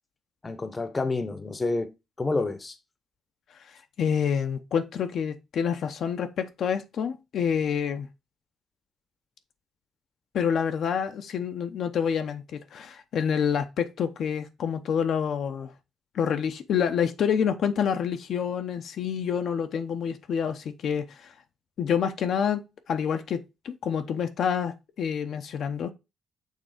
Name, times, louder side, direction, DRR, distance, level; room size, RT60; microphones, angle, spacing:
voice 1, 0.4-1.9 2.2-2.7, left 3 dB, 25° left, 0.9 m, -28 dB
voice 2, 4.0-8.1 10.3-15.7 16.1-21.3 21.8-22.6 22.9-25.9, left 7 dB, 65° left, 0.8 m, -27 dB
6.6 x 3.5 x 4.9 m
cardioid pair, 90°, 0 cm